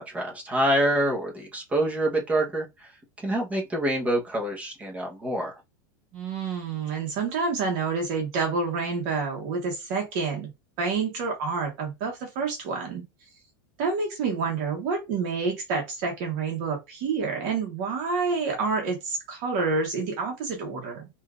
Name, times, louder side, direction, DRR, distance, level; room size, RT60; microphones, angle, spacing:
voice 1, 0.0-2.9 3.2-5.5, right 1 dB, 10° right, 1.0 m, -26 dB
voice 2, 6.1-10.5 10.8-13.0 13.8-21.1, right 4 dB, 50° right, 1.1 m, -28 dB
3.5 x 2.6 x 2.4 m
supercardioid pair, 155°, 12 cm